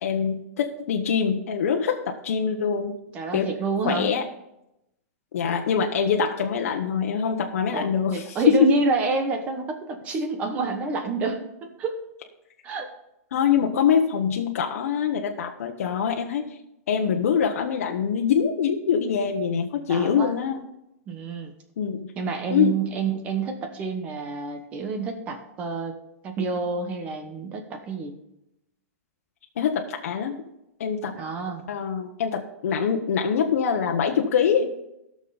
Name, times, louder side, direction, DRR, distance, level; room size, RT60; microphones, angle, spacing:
voice 1, 0.0-2.9 3.3-3.5 3.8-4.2 5.3-8.7 13.3-16.5 16.9-20.6 21.8-22.1 22.5-22.8 29.6-30.4 30.8-31.1 31.7-34.7, left 7 dB, 70° left, 2 dB, 1.1 m, -24 dB
voice 2, 3.1-4.1 7.7-12.0 12.6-12.9 19.9-20.3 21.1-21.5 22.1-25.9 26.2-28.2 31.1-31.6, right 4 dB, 15° right, 6 dB, 1.1 m, -28 dB
16.5 x 6.5 x 4.0 m, 0.85 s
supercardioid pair, 180°, 8 cm